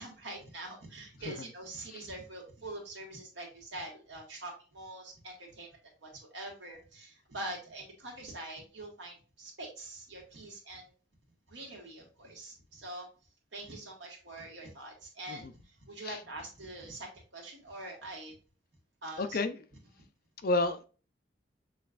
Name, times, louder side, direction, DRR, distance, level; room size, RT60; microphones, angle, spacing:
voice 1, 0.0-10.9 11.5-13.1 13.5-18.3 19.0-19.4 20.0-20.1, right 2 dB, 90° right, 1.8 m, -44 dB
voice 2, 19.2-19.5 20.4-20.9, left 2 dB, 50° left, 0.5 m, -30 dB
6.4 x 3.1 x 2.4 m
head